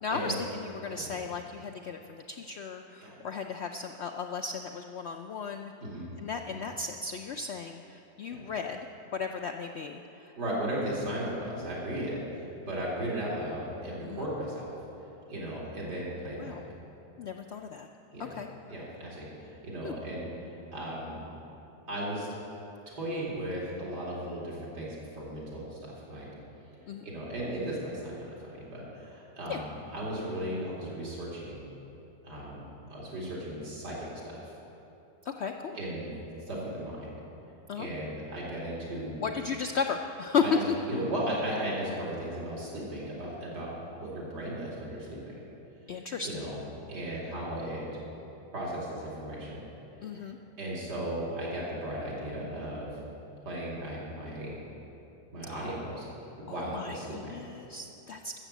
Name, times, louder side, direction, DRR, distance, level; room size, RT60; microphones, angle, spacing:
voice 1, 0.0-5.7 6.2-8.9 9.1-10.3 14.0-14.3 16.4-16.6 17.2-17.9 18.3-18.5 19.8-19.9 26.9-27.0 29.5-29.6 35.2-35.8 37.7-37.9 39.2-40.8 45.9-46.4 50.0-50.4 55.5-56.0 56.5-58.3, left 5 dB, 80° left, 5 dB, 0.5 m, -35 dB
voice 2, 10.4-14.7 15.3-16.5 18.1-18.3 18.7-21.3 21.9-22.3 22.9-25.8 26.1-26.3 27.0-31.6 32.2-34.1 35.7-36.1 36.5-37.1 37.7-39.3 40.4-40.6 40.9-45.2 46.2-46.6 46.9-47.9 48.5-49.6 50.1-50.2 50.6-52.9 53.4-54.6 55.3-56.1 56.4-57.4, right 1 dB, 85° right, -5 dB, 3.3 m, -36 dB
13.5 x 7.4 x 8.0 m, 3.0 s
omnidirectional pair, 1.8 m